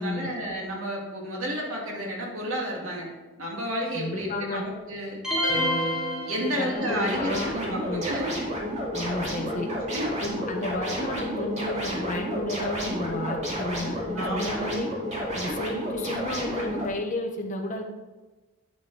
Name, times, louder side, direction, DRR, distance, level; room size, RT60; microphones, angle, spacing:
voice 1, 0.0-3.1 3.4-5.2 6.3-8.3 9.9-10.2 14.2-14.7, equal, 80° right, -2 dB, 2.4 m, -31 dB
voice 2, 3.9-4.7 6.4-8.0 8.9-9.7 10.2-14.9 15.3-17.8, left 2 dB, 35° left, 1 dB, 1.1 m, -32 dB
sound 1, 5.2-7.1, equal, 5° right, 2.9 m, -27 dB
sound 2, 6.7-16.9, equal, 35° right, 2.3 m, -31 dB
9.3 x 8.7 x 3.4 m, 1.2 s
head